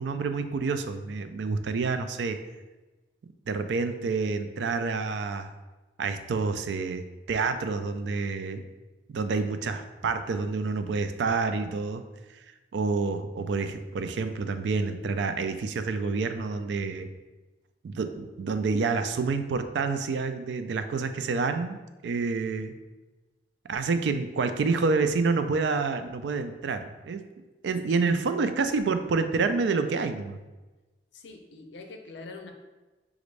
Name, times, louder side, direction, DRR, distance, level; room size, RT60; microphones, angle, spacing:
voice 1, 0.0-2.4 3.5-5.5 6.0-8.6 9.1-12.0 12.7-17.1 17.8-22.7 23.7-27.2 27.6-30.4, right 4 dB, 70° right, 9 dB, 0.3 m, -28 dB
voice 2, 31.1-32.5, left 3 dB, 70° left, 4 dB, 0.5 m, -44 dB
5.0 x 2.5 x 3.2 m, 1.2 s
head